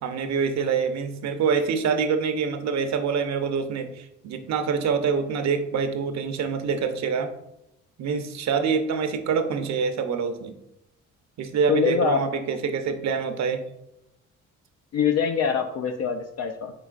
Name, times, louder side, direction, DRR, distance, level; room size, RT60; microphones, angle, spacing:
voice 1, 0.0-7.3 8.0-10.5 11.4-13.6, right 6 dB, 65° right, 8 dB, 0.6 m, -26 dB
voice 2, 11.7-12.2 14.9-16.7, left 6 dB, 60° left, 5 dB, 0.4 m, -24 dB
4.8 x 3.9 x 2.4 m, 0.85 s
cardioid pair, 90°, 30 cm